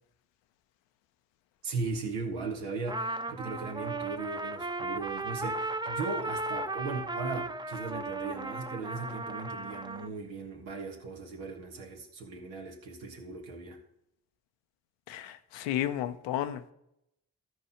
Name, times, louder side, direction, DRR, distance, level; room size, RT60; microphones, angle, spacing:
voice 1, 1.6-13.8, right 3 dB, 90° right, 2 dB, 1.6 m, -38 dB
Trumpet, 2.9-10.1, right 2 dB, 10° right, 0.4 m, -36 dB
voice 2, 15.1-16.7, left 11 dB, 90° left, 10 dB, 0.7 m, -33 dB
13.0 x 4.7 x 5.6 m, 0.79 s
supercardioid pair, 45°, 43 cm